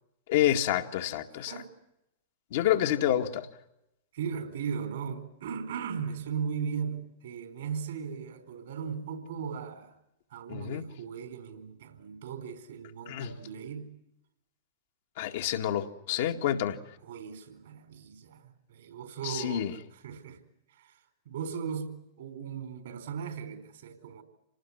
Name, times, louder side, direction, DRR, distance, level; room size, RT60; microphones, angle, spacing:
voice 1, 0.3-1.5 2.5-3.5 10.5-10.8 13.1-13.3 15.2-16.8 19.2-19.7, left 11 dB, 55° left, 2.1 m, -28 dB
voice 2, 1.4-1.7 4.1-9.9 10.3-14.0 17.0-20.4 20.7-24.2, right 6 dB, 65° right, 4.3 m, -38 dB
27.5 x 19.0 x 9.6 m
figure-of-eight pair, 100°, 0 cm